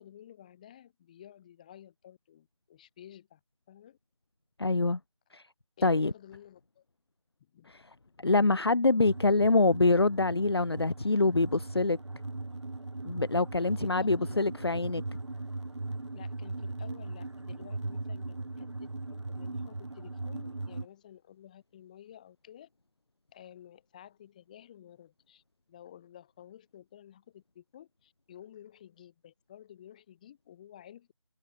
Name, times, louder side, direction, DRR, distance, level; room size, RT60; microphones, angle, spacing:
voice 1, 0.0-3.4 3.7-4.0 5.8-6.8 7.5-7.8 13.6-14.4 16.1-22.7 23.3-25.4 25.7-31.1, left 10 dB, 15° left, 7.7 m, -53 dB
voice 2, 4.6-5.0 5.3-5.4 5.8-6.1 8.2-12.0 13.0-15.0, left 3 dB, 45° left, 1.4 m, -25 dB
sound 1, 9.0-20.9, right 2 dB, 55° right, 2.7 m, -38 dB
figure-of-eight pair, 170°, 18 cm